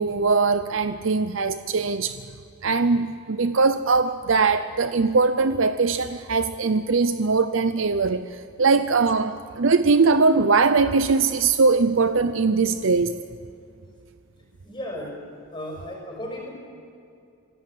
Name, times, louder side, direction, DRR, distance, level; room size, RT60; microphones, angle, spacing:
voice 1, 0.0-2.1 2.6-8.2 8.6-13.1, right 4 dB, 65° right, 11 dB, 0.6 m, -21 dB
voice 2, 14.6-15.2 15.5-16.5, left 1 dB, 20° left, 0 dB, 6.0 m, -34 dB
26.0 x 17.0 x 7.6 m, 2.5 s
head